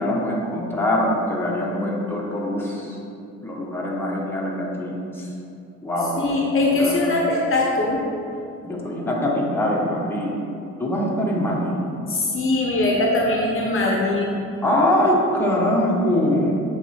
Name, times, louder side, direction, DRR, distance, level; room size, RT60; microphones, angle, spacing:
voice 1, 0.0-3.0 3.4-5.3 5.8-6.3 6.8-7.2 8.6-10.3 10.8-11.8 14.6-16.5, left 1 dB, 5° left, -4 dB, 1.1 m, -23 dB
voice 2, 6.2-8.0 12.1-14.3, left 2 dB, 45° left, -2 dB, 0.8 m, -21 dB
7.7 x 3.2 x 4.3 m, 2.6 s
cardioid pair, 90°, 30 cm